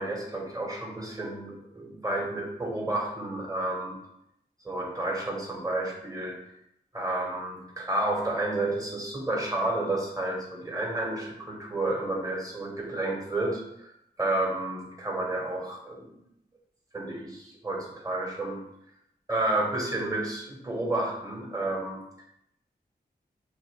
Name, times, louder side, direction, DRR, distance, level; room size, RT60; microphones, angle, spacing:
voice 1, 0.0-4.0 4.6-6.4 6.9-13.9 14.2-16.1 16.9-18.6 19.3-22.0, right 2 dB, 20° right, -2 dB, 1.3 m, -31 dB
4.7 x 2.6 x 3.3 m, 0.78 s
cardioid pair, 40°, 18 cm